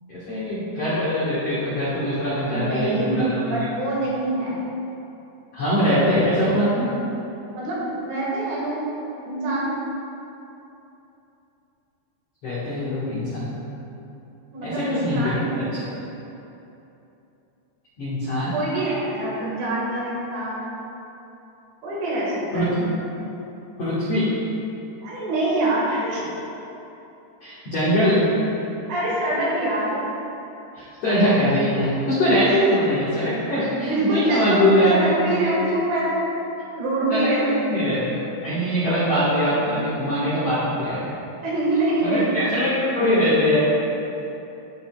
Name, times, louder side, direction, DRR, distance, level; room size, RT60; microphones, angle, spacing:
voice 1, 0.1-3.7 5.5-6.9 12.4-13.5 14.6-15.4 15.7-15.8 18.0-18.6 22.5-22.9 23.8-24.3 27.4-28.3 30.7-35.1 37.1-41.1 42.0-43.6, equal, 75° left, -11 dB, 1.4 m, -22 dB
voice 2, 2.5-4.6 7.5-8.9 9.2-9.7 14.5-15.6 18.1-18.2 18.5-20.7 21.8-22.7 25.0-26.3 28.9-30.0 32.6-32.7 33.8-36.2 36.8-37.6 41.4-42.4, right 1 dB, 85° right, -6 dB, 4.1 m, -25 dB
14.0 x 5.3 x 2.3 m, 2.9 s
omnidirectional pair, 5.2 m